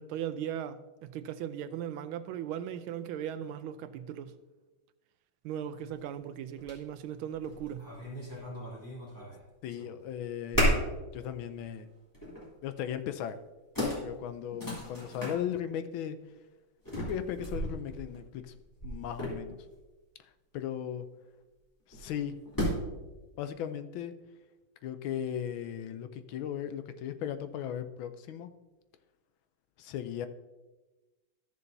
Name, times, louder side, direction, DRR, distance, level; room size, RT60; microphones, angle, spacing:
voice 1, 0.0-4.3 5.4-7.9, right 9 dB, 90° right, 1.4 m, -38 dB
sound 1, 5.8-5.9 6.6-6.8 7.2-9.4 9.7-10.1 10.5-11.0 11.5-11.6 12.1-12.5 13.3-13.4 13.8-15.4 16.8-19.7 21.9-23.0, equal, 10° left, 2.8 m, -34 dB
voice 2, 9.6-11.9 12.6-13.4 14.0-16.2 17.0-18.5 18.8-19.6 20.2-21.1 21.9-22.4 23.4-24.1 24.8-28.5 29.8-30.3, left 9 dB, 80° left, 1.4 m, -37 dB
13.5 x 6.9 x 2.7 m
omnidirectional pair, 2.2 m